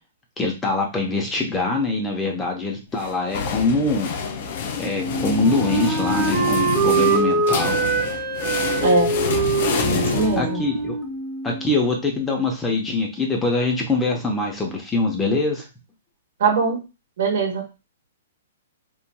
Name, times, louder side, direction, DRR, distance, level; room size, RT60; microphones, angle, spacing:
voice 1, 0.4-4.1 4.8-7.8 10.4-11.0 11.4-15.6, left 3 dB, 15° left, 1 dB, 0.8 m, -23 dB
sound 1, 3.0-10.9, left 6 dB, 60° left, 0.5 m, -27 dB
Wind instrument woodwind instrument, 5.0-11.8, right 4 dB, 15° right, 0.9 m, -24 dB
voice 2, 8.8-9.1 9.9-10.6 16.4-16.8 17.2-17.6, right 4 dB, 65° right, 3 dB, 1.0 m, -21 dB
3.0 x 2.5 x 2.2 m, 0.28 s
hypercardioid pair, 135°, 0 cm